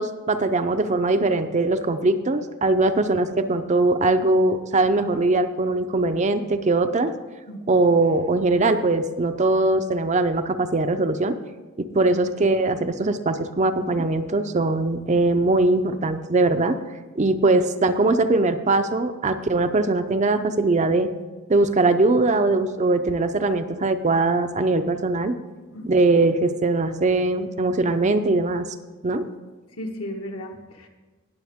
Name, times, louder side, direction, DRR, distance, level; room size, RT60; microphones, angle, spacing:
voice 1, 0.0-7.1 7.7-11.4 11.8-16.8 17.2-21.1 21.5-25.3 25.9-28.7 29.0-29.3, right 2 dB, 30° right, 8 dB, 0.5 m, -21 dB
voice 2, 7.5-7.8 17.2-17.3 25.7-25.9 29.8-30.9, equal, 70° left, 3 dB, 1.3 m, -35 dB
18.5 x 6.9 x 3.6 m, 1.3 s
head